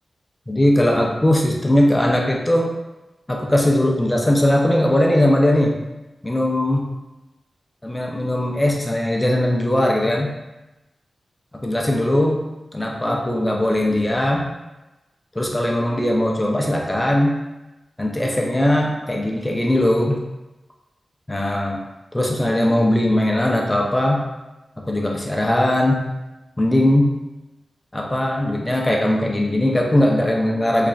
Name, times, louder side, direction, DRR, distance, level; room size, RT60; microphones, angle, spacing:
voice 1, 0.5-2.7 3.3-5.8 6.2-6.9 7.8-10.3 11.6-12.4 12.7-14.5 15.3-17.4 18.0-20.2 21.3-21.8 22.1-24.3 24.9-26.0 26.6-27.2 27.9-30.9, left 1 dB, 15° left, 0 dB, 0.5 m, -19 dB
3.7 x 3.2 x 2.4 m, 1.0 s
wide cardioid pair, 135°, 0 cm